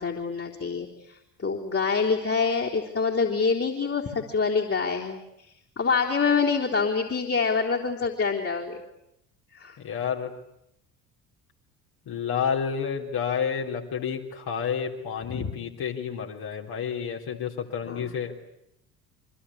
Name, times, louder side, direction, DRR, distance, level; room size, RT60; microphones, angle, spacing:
voice 1, 0.0-5.2 5.8-8.8 9.5-9.8 15.2-15.5 17.8-18.1, left 5 dB, 30° left, -3 dB, 3.8 m, -26 dB
voice 2, 9.8-10.3 12.1-18.4, left 7 dB, 50° left, 0 dB, 3.9 m, -30 dB
28.0 x 25.0 x 8.6 m, 0.80 s
figure-of-eight pair, 55°, 48 cm